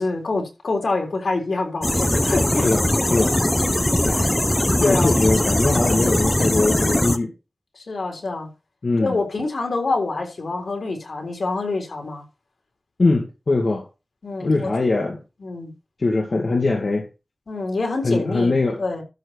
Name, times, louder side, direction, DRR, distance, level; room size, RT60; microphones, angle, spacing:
voice 1, 0.0-2.7 3.6-3.8 4.1-4.4 4.8-5.1 7.7-8.5 9.0-12.2 14.2-14.7 15.4-15.7 17.5-19.0, left 3 dB, 90° left, 3.7 m, -26 dB
sound 1, 1.8-7.2, left 1 dB, 20° left, 1.0 m, -20 dB
voice 2, 2.6-3.4 4.1-4.2 4.8-7.3 8.8-9.1 13.0-13.9 14.4-15.2 16.0-17.1 18.0-18.8, left 3 dB, 65° left, 2.3 m, -21 dB
13.0 x 4.4 x 6.4 m
wide cardioid pair, 85°, 0 cm